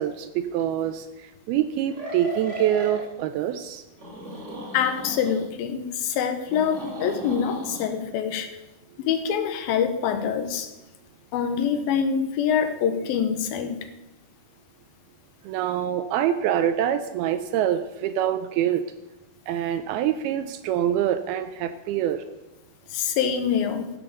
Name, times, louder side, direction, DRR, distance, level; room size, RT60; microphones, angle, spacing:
voice 1, 0.0-3.8 15.4-18.8 19.5-22.2, right 10 dB, 80° right, 9 dB, 2.5 m, -25 dB
sound 1, 0.6-0.7 1.9-3.0 4.0-5.5 6.5-7.8, equal, 25° right, 1.8 m, -36 dB
voice 2, 4.7-8.5 9.0-10.7 11.3-13.8 22.9-23.9, left 7 dB, 75° left, 7 dB, 2.8 m, -25 dB
14.5 x 7.3 x 6.7 m, 1.0 s
omnidirectional pair, 4.5 m